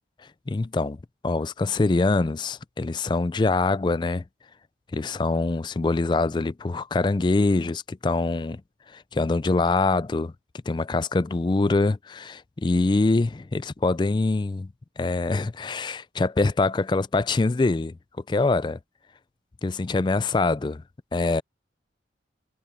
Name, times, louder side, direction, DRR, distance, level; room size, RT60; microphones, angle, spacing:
voice 1, 0.5-1.0 1.2-4.2 4.9-8.6 9.1-10.3 10.7-14.7 15.0-17.9 18.3-18.8 19.6-20.8 21.1-21.4, left 3 dB, 25° left, 0.3 m, -24 dB
head